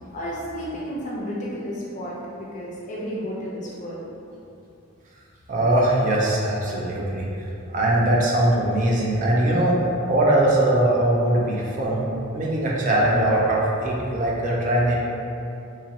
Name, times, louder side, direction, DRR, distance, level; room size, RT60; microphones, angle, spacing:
voice 1, 0.1-4.1, equal, 35° left, -5 dB, 0.5 m, -32 dB
voice 2, 5.5-7.3 7.7-9.8 10.1-12.1 12.3-15.0, right 1 dB, 35° right, -4 dB, 0.4 m, -21 dB
2.9 x 2.5 x 2.8 m, 2.7 s
head